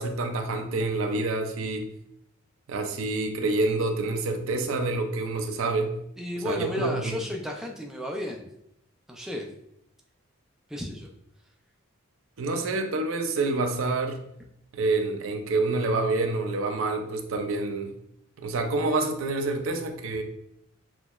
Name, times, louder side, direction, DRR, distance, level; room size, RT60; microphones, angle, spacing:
voice 1, 0.0-1.9 2.7-6.0 6.4-7.2 12.4-14.2 14.7-17.9 18.4-20.2, right 3 dB, 70° right, 6 dB, 0.5 m, -27 dB
voice 2, 6.2-8.5 9.1-9.5 10.7-11.1, left 1 dB, ahead, 0 dB, 0.3 m, -33 dB
5.9 x 2.0 x 2.3 m, 0.76 s
head